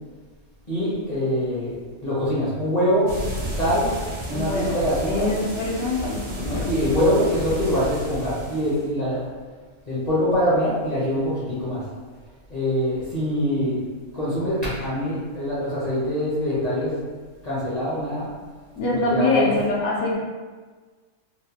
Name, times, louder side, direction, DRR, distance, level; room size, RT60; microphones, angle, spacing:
voice 1, 0.7-3.1 3.5-3.9 4.3-5.3 6.6-9.3 9.9-11.8 12.5-13.8 14.1-17.0 17.4-18.3 18.9-19.5, equal, 40° left, -10 dB, 0.6 m, -24 dB
sound 1, 3.1-8.9, equal, 55° right, 0.5 m, -32 dB
voice 2, 4.3-4.7 5.0-7.0 18.8-20.1, left 2 dB, 80° left, -4 dB, 1.1 m, -24 dB
2.9 x 2.0 x 2.7 m, 1.4 s
omnidirectional pair, 1.5 m